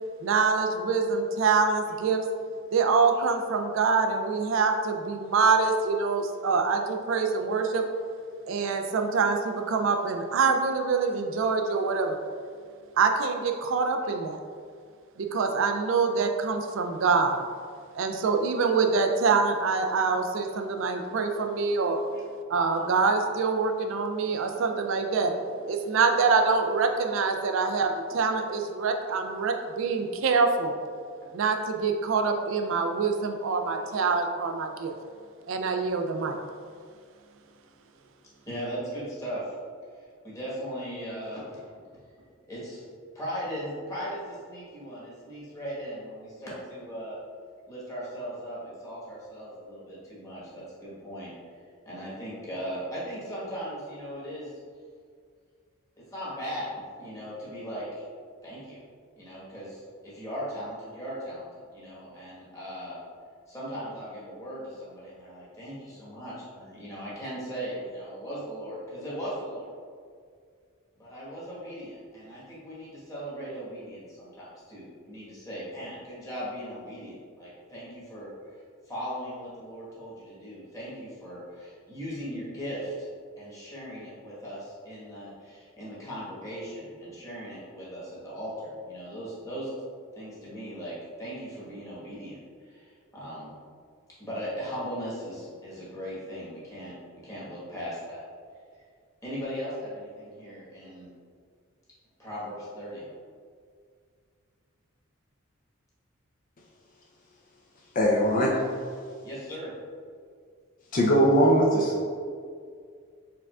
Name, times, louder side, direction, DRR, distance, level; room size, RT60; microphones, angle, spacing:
voice 1, 0.2-2.2 2.7-7.8 8.5-12.2 13.0-14.4 15.2-17.4 17.9-22.0 22.5-25.3 25.7-30.7 31.3-34.9 35.5-36.4, right 4 dB, 65° right, 4 dB, 0.3 m, -25 dB
voice 2, 38.4-39.5 39.9-41.7 42.5-42.9 43.1-47.2 47.7-51.3 51.8-54.5 56.0-58.0 58.4-58.8 59.2-63.0 63.5-69.7 71.0-83.1 83.4-89.7 90.1-93.5 94.2-98.2 98.7-98.8 99.2-101.1 102.2-103.1 109.2-109.7, equal, 15° left, -9 dB, 1.2 m, -38 dB
voice 3, 107.9-108.5 110.9-112.0, equal, 40° left, -3 dB, 0.5 m, -21 dB
4.6 x 3.6 x 2.3 m, 2.1 s
head